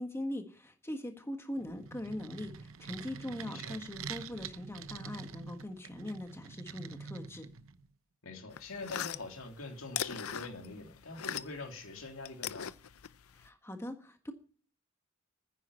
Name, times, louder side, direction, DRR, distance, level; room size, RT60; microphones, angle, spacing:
voice 1, 0.0-7.5 13.3-14.3, left 1 dB, 10° left, 5 dB, 1.6 m, -41 dB
sound 1, 1.6-7.9, right 6 dB, 70° right, 0.8 m, -46 dB
voice 2, 8.2-12.7, left 3 dB, 70° left, 3 dB, 3.1 m, -44 dB
sound 2, 8.5-11.7 12.0-13.5, left 10 dB, 90° left, 0.6 m, -40 dB
10.0 x 9.9 x 9.8 m, 0.43 s
head